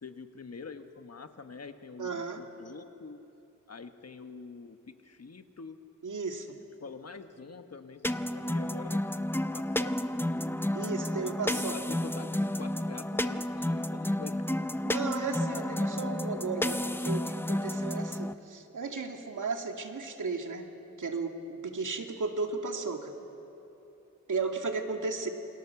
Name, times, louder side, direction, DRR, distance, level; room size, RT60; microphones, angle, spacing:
voice 1, 0.0-3.2 3.7-5.8 6.8-10.1 11.4-14.4 14.7-14.9, left 4 dB, 50° left, 8 dB, 1.3 m, -46 dB
voice 2, 2.0-2.4 6.0-6.6 10.7-11.8 14.8-20.7 21.0-23.1 24.3-25.3, right 4 dB, 70° right, 3 dB, 2.2 m, -35 dB
sound 1, 8.0-18.3, left 1 dB, 5° left, 0.6 m, -31 dB
28.0 x 24.0 x 7.0 m, 3.0 s
wide cardioid pair, 115°, 31 cm